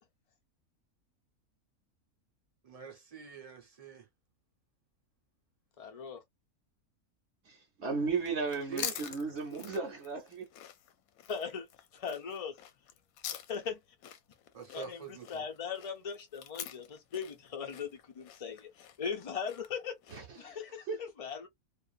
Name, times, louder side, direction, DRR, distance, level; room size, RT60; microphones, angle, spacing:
voice 1, 2.6-4.1 8.7-9.0 9.4-9.6 14.5-15.5, right 7 dB, 35° right, 0.7 m, -45 dB
voice 2, 5.8-6.2 11.3-11.7 11.9-12.6 13.5-13.8 14.7-21.5, left 6 dB, 45° left, 0.4 m, -39 dB
voice 3, 7.4-10.5 20.1-20.6 20.9-21.0, right 4 dB, 55° right, 1.0 m, -35 dB
sound 1, 8.1-20.4, left 10 dB, 75° left, 1.0 m, -46 dB
2.5 x 2.4 x 2.4 m
omnidirectional pair, 1.5 m